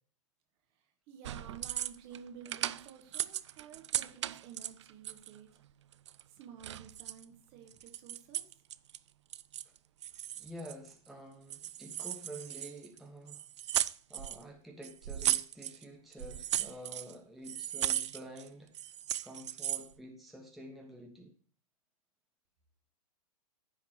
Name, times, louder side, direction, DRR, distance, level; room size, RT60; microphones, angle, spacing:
voice 1, 1.1-5.5 6.3-8.4, right 7 dB, 35° right, 4 dB, 1.7 m, -52 dB
sound 1, 1.2-2.2 2.4-5.4 5.9-7.2 7.7-9.0 9.3-9.8 10.0-11.1 11.5-13.0 13.3-14.4 14.8-15.8 16.1-17.1 17.4-18.5 18.7-19.9, right 11 dB, 50° right, 0.4 m, -36 dB
voice 2, 10.4-13.4 14.1-18.7 19.2-21.3, equal, ahead, 0 dB, 1.3 m, -49 dB
14.5 x 5.7 x 3.0 m, 0.43 s
figure-of-eight pair, 105°, 19 cm